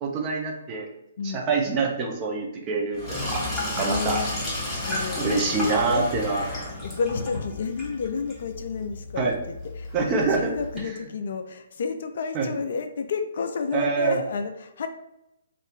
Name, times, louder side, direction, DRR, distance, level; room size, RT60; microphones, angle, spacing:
voice 1, 0.0-0.9 1.2-3.5 3.8-4.2 5.2-6.5 9.2-9.3 9.9-10.5 12.3-12.5 13.7-14.2, right 4 dB, 25° right, 0 dB, 0.6 m, -25 dB
voice 2, 1.2-1.5 3.8-4.3 4.9-6.2 6.8-14.9, left 5 dB, 55° left, 7 dB, 0.3 m, -31 dB
Sink (filling or washing), 2.9-10.8, left 2 dB, 10° left, 1.3 m, -32 dB
2.5 x 2.5 x 3.4 m, 0.86 s
figure-of-eight pair, 130°, 0 cm